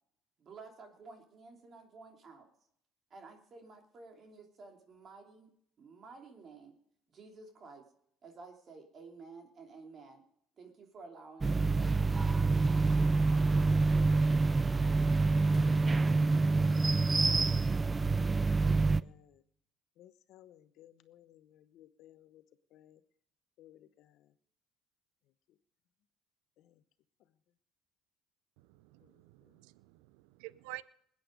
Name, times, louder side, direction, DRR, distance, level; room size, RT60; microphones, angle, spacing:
voice 1, 0.4-2.5 3.1-6.7 7.1-7.8 8.2-10.2 10.6-12.7, right 4 dB, 45° right, 3 dB, 3.0 m, -53 dB
sound 1, 11.4-19.0, right 3 dB, 25° right, 0.5 m, -27 dB
voice 2, 17.1-18.0 18.6-19.4 20.0-22.4 22.7-23.0 23.6-24.3 26.6-26.7 29.0-29.1, left 12 dB, 70° left, 12 dB, 0.9 m, -59 dB
voice 3, 28.7-30.8, right 18 dB, 80° right, 19 dB, 0.5 m, -49 dB
20.5 x 8.8 x 5.2 m, 0.71 s
supercardioid pair, 70°, 0 cm